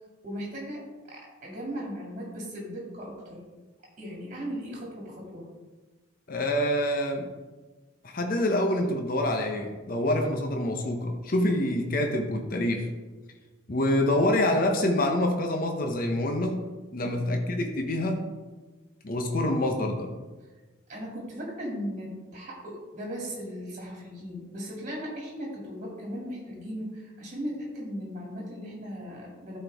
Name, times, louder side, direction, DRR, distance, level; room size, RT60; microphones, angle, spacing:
voice 1, 0.2-3.4 4.0-5.5 17.0-17.3 20.9-29.6, equal, 35° right, -2 dB, 2.4 m, -37 dB
voice 2, 6.3-7.3 8.0-12.9 13.7-16.7 16.9-18.2 19.0-20.1, left 1 dB, 45° left, 3 dB, 0.7 m, -26 dB
12.0 x 4.4 x 3.4 m, 1.3 s
head